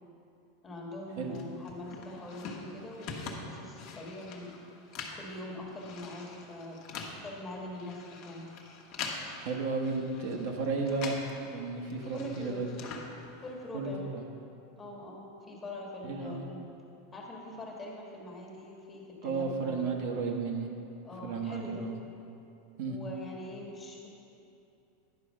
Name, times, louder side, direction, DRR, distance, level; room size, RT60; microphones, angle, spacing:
voice 1, 0.6-4.6 5.1-8.5 12.1-12.6 13.4-14.1 14.8-16.6 17.1-19.9 21.0-21.9 22.9-24.1, left 1 dB, 15° left, -2 dB, 1.4 m, -43 dB
sound 1, 1.3-11.4 11.6-13.7, left 4 dB, 45° left, 1.1 m, -44 dB
voice 2, 9.4-11.1 11.4-12.7 13.7-14.2 16.0-16.5 19.2-20.7 21.2-22.0 22.8-23.0, right 4 dB, 60° right, 1 dB, 1.1 m, -33 dB
10.5 x 4.6 x 6.3 m, 2.8 s
supercardioid pair, 155°, 0 cm